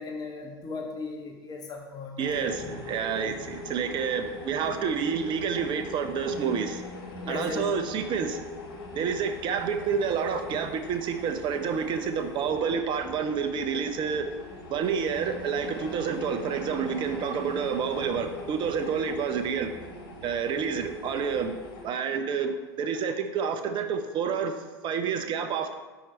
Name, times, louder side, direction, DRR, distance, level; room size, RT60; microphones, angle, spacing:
voice 1, 0.0-2.7 7.2-7.6, left 3 dB, 30° left, 1 dB, 0.9 m, -37 dB
sound 1, 2.2-21.8, left 2 dB, 65° left, 1.5 m, -41 dB
voice 2, 2.2-6.9 7.3-8.5 9.0-14.3 14.7-19.7 20.2-21.5 21.8-25.7, right 6 dB, 35° right, 7 dB, 0.6 m, -29 dB
5.5 x 4.5 x 4.4 m, 1.2 s
hypercardioid pair, 85°, 14 cm